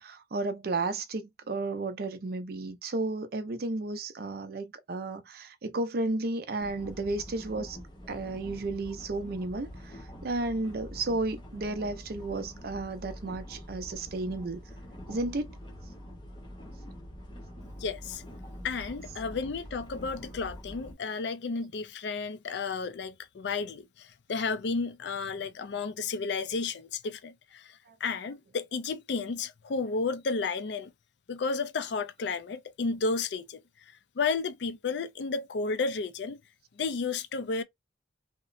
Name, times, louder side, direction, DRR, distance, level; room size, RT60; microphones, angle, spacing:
voice 1, 0.0-7.8 8.1-14.6 15.1-15.5 27.9-28.0, right 2 dB, 55° right, 0.5 m, -33 dB
sound 1, 6.6-20.9, equal, 25° left, 0.7 m, -45 dB
voice 2, 17.8-18.2 18.6-30.9 31.3-33.6 34.2-36.4 36.8-37.6, left 4 dB, 70° left, 0.4 m, -32 dB
2.8 x 2.0 x 2.5 m
head